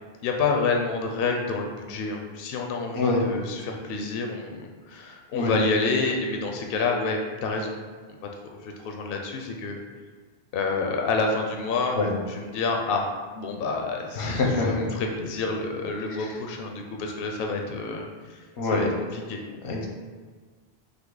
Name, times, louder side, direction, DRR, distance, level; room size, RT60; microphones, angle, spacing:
voice 1, 0.2-7.8 8.1-8.2 8.5-9.8 10.5-12.0 12.3-13.1 13.3-19.4, left 4 dB, 65° left, 2 dB, 0.7 m, -28 dB
voice 2, 14.2-14.9 16.2-16.3 18.6-18.9 19.6-19.9, left 3 dB, 85° left, -1 dB, 1.0 m, -25 dB
5.6 x 2.0 x 3.8 m, 1.5 s
omnidirectional pair, 1.1 m